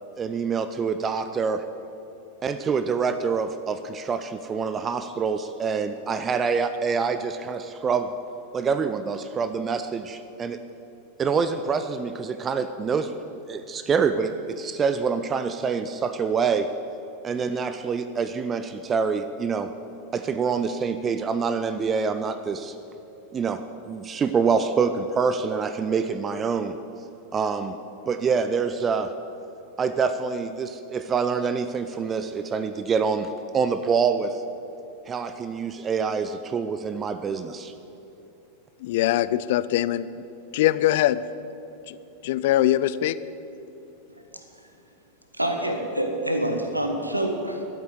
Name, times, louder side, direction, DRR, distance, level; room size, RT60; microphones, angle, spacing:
voice 1, 0.2-1.7 2.4-8.1 8.5-10.6 11.2-16.7 17.2-19.7 20.1-22.8 23.3-26.8 27.3-27.8 28.1-29.1 29.8-34.4 35.0-37.7, right 5 dB, 20° right, 10 dB, 0.5 m, -26 dB
voice 2, 38.8-40.1 40.5-41.2 41.9-42.0 42.2-43.2, left 14 dB, 50° left, 16 dB, 0.4 m, -22 dB
voice 3, 45.3-47.6, right 1 dB, 85° right, 4 dB, 1.4 m, -26 dB
12.5 x 8.5 x 7.9 m, 2.9 s
figure-of-eight pair, 90°, 0 cm